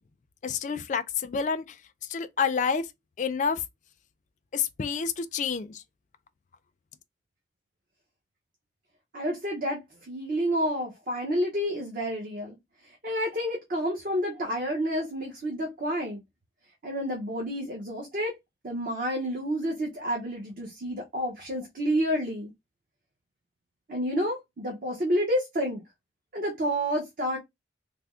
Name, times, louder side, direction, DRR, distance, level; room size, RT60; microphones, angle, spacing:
voice 1, 0.4-1.6 2.1-2.9 3.2-3.6 4.5-5.8, left 6 dB, 40° left, 0.3 m, -28 dB
voice 2, 9.1-12.6 12.8-16.2 16.8-18.3 18.6-22.5 23.9-25.8 26.3-27.4, equal, 50° right, 0.8 m, -29 dB
3.3 x 2.0 x 3.6 m
head